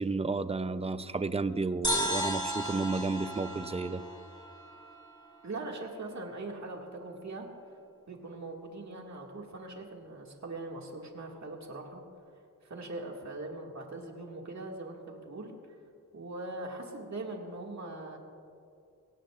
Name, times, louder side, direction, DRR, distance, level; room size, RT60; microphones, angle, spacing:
voice 1, 0.0-4.0, right 3 dB, 20° right, 12 dB, 0.6 m, -32 dB
sound 1, 1.8-5.4, equal, 15° left, 4.3 m, -34 dB
voice 2, 5.4-7.5 8.1-12.0 12.6-15.8 16.1-18.2, right 2 dB, 50° right, 0 dB, 2.2 m, -41 dB
23.0 x 17.0 x 2.5 m, 2.4 s
cardioid pair, 60°, 34 cm